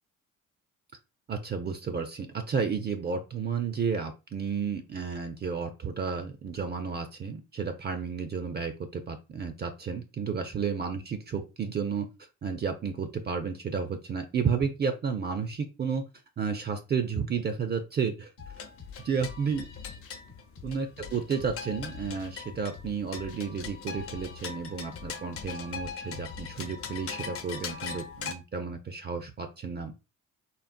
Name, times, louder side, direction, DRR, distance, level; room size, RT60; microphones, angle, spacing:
voice 1, 1.3-12.1 12.4-16.0 16.4-18.3 18.6-18.7 19.0-19.7 20.6-29.9, right 6 dB, 35° right, 7 dB, 0.4 m, -32 dB
sound 1, 18.4-27.0, left 7 dB, 85° left, 0.9 m, -47 dB
sound 2, 18.4-28.3, left 6 dB, 50° left, 0.6 m, -41 dB
3.9 x 2.0 x 2.5 m, 0.28 s
cardioid pair, 90°, 30 cm